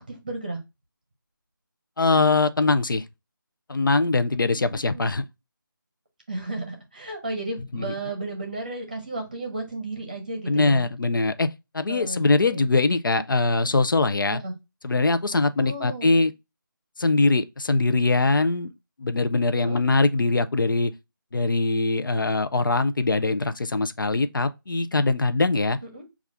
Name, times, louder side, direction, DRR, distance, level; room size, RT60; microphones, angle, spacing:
voice 1, 0.1-0.6 4.5-5.1 6.3-10.9 11.9-12.6 14.3-14.5 15.6-16.1 19.5-19.8 25.8-26.0, right 2 dB, 25° right, 0.8 m, -34 dB
voice 2, 2.0-3.0 3.7-5.2 7.7-7.8 10.5-11.5 11.7-14.4 14.8-16.3 17.0-18.7 19.0-20.9 21.3-25.8, left 3 dB, 70° left, 0.5 m, -22 dB
5.3 x 2.4 x 3.3 m
figure-of-eight pair, 180°, 12 cm